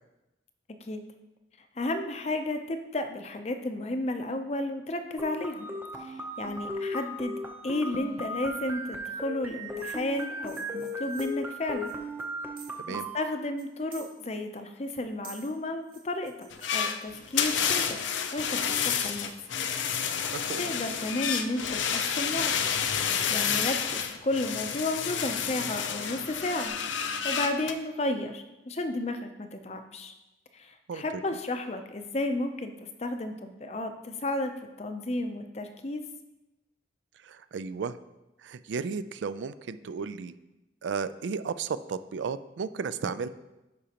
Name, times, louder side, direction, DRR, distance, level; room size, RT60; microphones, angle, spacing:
voice 1, 1.8-5.7 6.0-7.4 7.6-11.9 12.9-18.0 18.3-19.3 20.1-22.5 23.3-26.7 27.2-30.1 30.5-32.7 33.0-34.5 34.8-36.0, left 2 dB, 35° left, 7 dB, 0.5 m, -33 dB
sound 1, 5.2-13.2, left 1 dB, 10° right, 0.6 m, -37 dB
sound 2, 9.8-12.9 13.2-13.3 13.6-14.6 14.9-17.4 18.0-18.4 18.8-19.4 19.8-20.2 20.5-20.8 21.4-21.5 21.9-22.2 22.8-23.7 24.2-26.2 26.6-26.7, right 6 dB, 45° right, 1.0 m, -52 dB
sound 3, 16.5-27.7, left 7 dB, 80° left, 0.6 m, -29 dB
voice 2, 20.3-20.6 30.9-31.2 37.2-38.0 38.4-40.3 40.8-43.3, right 5 dB, 75° right, 13 dB, 0.3 m, -34 dB
11.5 x 5.0 x 2.9 m, 1.0 s
head